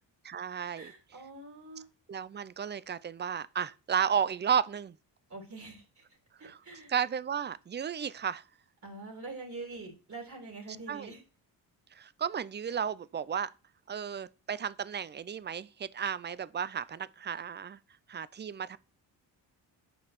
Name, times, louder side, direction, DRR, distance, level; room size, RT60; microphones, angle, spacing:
voice 1, 0.2-0.9 2.1-5.0 6.4-6.6 6.9-8.4 10.9-11.1 11.9-13.5 13.9-17.8 18.1-18.8, right 7 dB, 25° right, 0.5 m, -33 dB
voice 2, 0.8-1.9 5.3-6.0 6.4-6.9 8.8-11.2, right 3 dB, 40° right, 3.2 m, -45 dB
6.4 x 5.5 x 6.0 m
cardioid pair, 70°, 43 cm